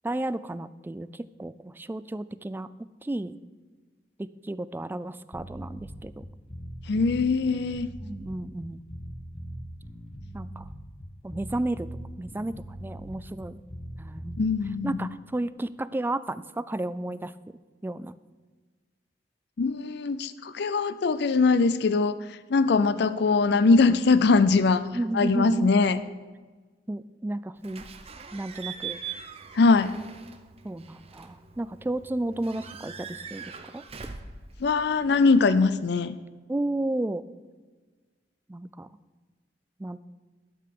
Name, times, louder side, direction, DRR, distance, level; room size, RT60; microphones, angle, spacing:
voice 1, 0.0-2.7 3.0-3.4 4.2-6.3 8.0-8.8 10.3-10.7 11.2-11.9 12.2-13.6 14.0-14.4 14.8-17.3 17.8-18.1 24.9-25.7 26.9-27.8 28.3-29.0 30.6-33.8 36.5-37.3 38.5-38.9 39.8-40.0, right 1 dB, 10° right, 15 dB, 0.3 m, -32 dB
sound 1, 5.3-14.9, equal, 35° left, 1.3 m, -40 dB
voice 2, 6.9-7.9 14.4-15.1 19.6-22.2 22.5-24.8 25.1-26.0 29.5-29.9 34.6-36.2, left 4 dB, 70° left, 13 dB, 0.5 m, -22 dB
Slam / Squeak / Alarm, 27.6-35.6, right 7 dB, 35° right, 0.7 m, -42 dB
12.0 x 5.8 x 6.6 m, 1.4 s
head